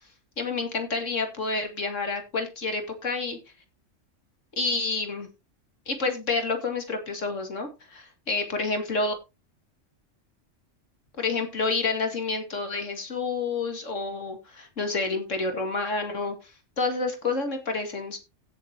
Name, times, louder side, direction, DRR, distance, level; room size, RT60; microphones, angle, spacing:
voice 1, 0.4-3.4 4.6-5.3 5.9-9.1 11.2-16.5 16.8-18.2, left 3 dB, 80° left, 5 dB, 2.8 m, -29 dB
16.5 x 7.3 x 2.9 m, 0.26 s
omnidirectional pair, 1.3 m